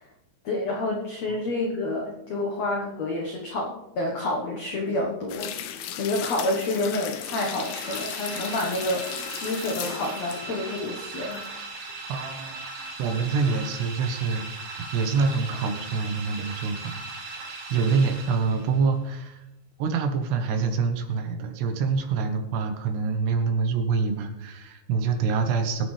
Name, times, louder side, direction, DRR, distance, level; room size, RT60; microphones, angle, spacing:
voice 1, 0.4-5.5 6.0-9.0 9.3-11.4, left 2 dB, 75° left, -1 dB, 1.6 m, -28 dB
sound 1, 5.3-11.5 11.9-12.0, left 9 dB, 90° left, 3.4 m, -36 dB
sound 2, 7.1-18.9, right 3 dB, 50° right, 2.3 m, -38 dB
voice 2, 12.1-19.4 19.8-25.9, right 5 dB, 75° right, 6 dB, 3.0 m, -26 dB
21.5 x 8.7 x 3.3 m, 0.93 s
omnidirectional pair, 5.2 m